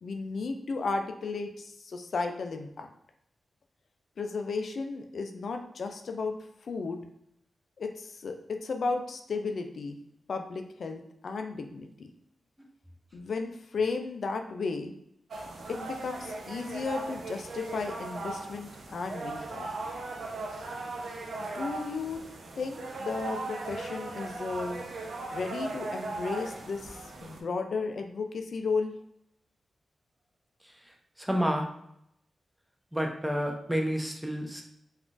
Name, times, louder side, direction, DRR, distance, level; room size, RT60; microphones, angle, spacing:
voice 1, 0.0-2.9 4.2-6.4 6.6-7.0 7.8-10.0 10.3-12.1 13.1-14.9 15.7-19.8 21.4-22.2 22.6-24.8 25.3-28.9, left 4 dB, 70° left, 5 dB, 0.3 m, -34 dB
sound 1, 15.3-27.4, right 2 dB, 75° right, 0.5 m, -38 dB
voice 2, 31.2-31.7 32.9-34.6, equal, 10° right, 2 dB, 0.7 m, -29 dB
3.5 x 2.4 x 2.4 m, 0.75 s
supercardioid pair, 40°, 0 cm